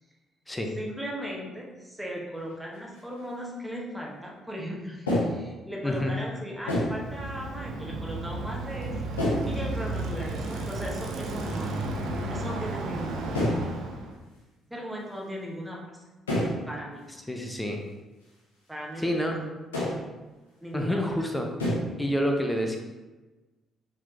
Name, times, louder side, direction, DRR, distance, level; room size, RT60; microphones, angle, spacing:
voice 1, 0.8-13.8 14.7-15.9 16.7-17.1 18.7-19.5 20.6-21.2, equal, 5° right, -2 dB, 1.3 m, -37 dB
sound 1, 2.4-2.5 2.9-3.2 5.1-5.5 6.7-7.0 9.2-9.6 10.6-10.8 11.1-11.5 11.8-12.0 12.3-12.7 13.3-13.7 16.3-16.7 17.0-17.1 17.8-17.9 19.7-20.0 21.6-21.7, left 1 dB, 85° left, 1.0 m, -28 dB
voice 2, 5.8-6.1 17.3-17.8 19.0-19.4 20.7-21.5 22.0-22.8, equal, 15° left, 3 dB, 0.9 m, -28 dB
Bicycle, 6.6-14.2, right 2 dB, 65° right, 0.6 m, -33 dB
4.7 x 3.8 x 3.0 m, 1.2 s
figure-of-eight pair, 45°, 0 cm